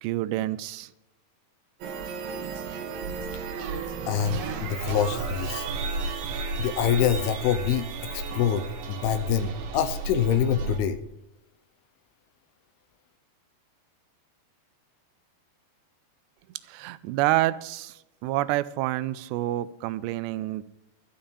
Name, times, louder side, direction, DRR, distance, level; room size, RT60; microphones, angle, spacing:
voice 1, 0.0-0.9 16.7-18.0 18.2-20.6, right 15 dB, 85° right, 16 dB, 2.7 m, -28 dB
sound 1, 1.8-10.8, right 4 dB, 65° right, 2.5 m, -33 dB
voice 2, 4.1-5.7 6.6-7.9 8.1-11.0, left 9 dB, 80° left, 11 dB, 2.5 m, -25 dB
13.0 x 5.6 x 8.5 m, 0.93 s
omnidirectional pair, 4.9 m